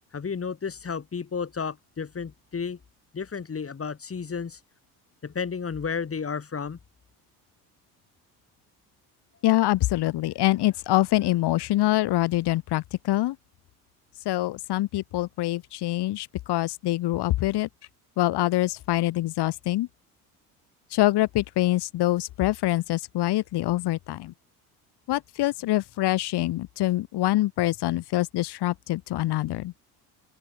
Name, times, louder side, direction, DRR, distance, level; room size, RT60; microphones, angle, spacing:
voice 1, 0.1-2.8 3.1-4.6 5.2-6.8, left 6 dB, 30° left, 6.0 m, -32 dB
voice 2, 9.4-13.4 14.2-17.7 18.2-19.9 20.9-24.3 25.1-29.7, left 16 dB, 60° left, 6.5 m, -25 dB
open air
hypercardioid pair, 65°, 46 cm